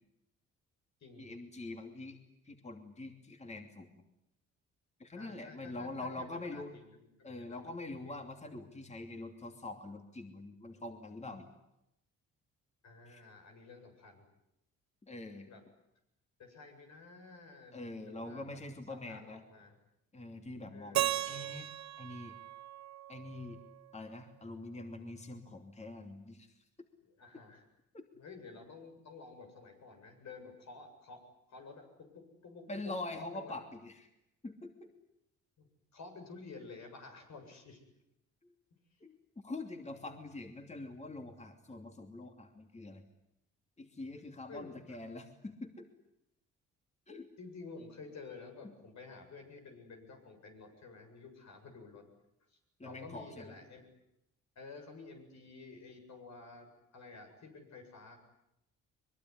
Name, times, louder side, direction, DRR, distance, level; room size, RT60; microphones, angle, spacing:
voice 1, 1.2-2.2 2.4-4.0 5.0-6.8 7.2-11.5 13.1-13.2 15.0-15.5 17.7-19.4 20.1-21.7 22.0-22.3 23.1-23.6 23.9-26.5 26.8-26.9 27.9-28.1 32.7-34.1 34.4-34.9 38.4-38.5 39.0-39.2 39.4-43.0 43.8-45.9 47.1-47.3 52.8-53.4, left 2 dB, 20° left, 5 dB, 2.9 m, -44 dB
voice 2, 5.2-7.7 8.0-8.2 12.8-14.2 15.5-15.6 16.4-18.6 18.9-19.8 20.7-21.1 27.0-27.6 28.1-31.2 31.5-31.9 32.1-33.6 35.6-35.7 35.9-37.8 38.9-39.0 44.5-45.0 47.4-52.0 52.5-53.8 54.6-58.2, left 4 dB, 65° left, 4 dB, 7.9 m, -51 dB
Keyboard (musical), 20.9-23.9, right 12 dB, 65° right, 1.1 m, -37 dB
23.5 x 23.0 x 9.8 m, 0.85 s
cardioid pair, 90°, 30 cm